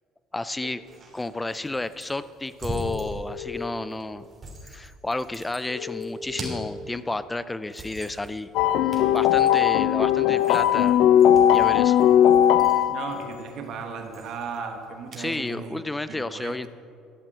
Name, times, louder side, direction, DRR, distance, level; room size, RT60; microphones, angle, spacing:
voice 1, 0.3-0.8 1.1-4.2 4.6-8.5 9.1-11.0 11.5-12.0 15.2-16.7, left 2 dB, 10° left, 15 dB, 0.5 m, -31 dB
sound 1, 0.6-0.7 2.7-3.9 5.7-6.7 8.7-9.7, left 8 dB, 90° left, 1.4 m, -36 dB
sound 2, 0.8-15.3, right 1 dB, 30° right, 3.2 m, -43 dB
sound 3, 8.6-13.2, left 10 dB, 70° left, 0.5 m, -18 dB
voice 2, 12.9-16.6, right 5 dB, 60° right, 4 dB, 1.5 m, -36 dB
13.0 x 8.0 x 7.8 m, 2.3 s
cardioid pair, 105°, 0 cm